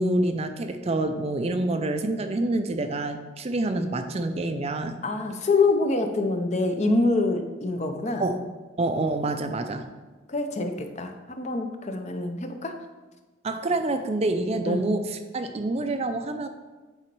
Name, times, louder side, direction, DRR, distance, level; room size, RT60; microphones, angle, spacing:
voice 1, 0.0-5.0 8.2-8.4 8.8-9.9 13.4-16.5, right 2 dB, 30° right, 7 dB, 0.4 m, -27 dB
voice 2, 5.0-8.2 10.3-12.7 14.7-14.8, left 3 dB, 35° left, 6 dB, 0.6 m, -25 dB
8.7 x 4.0 x 4.6 m, 1.2 s
head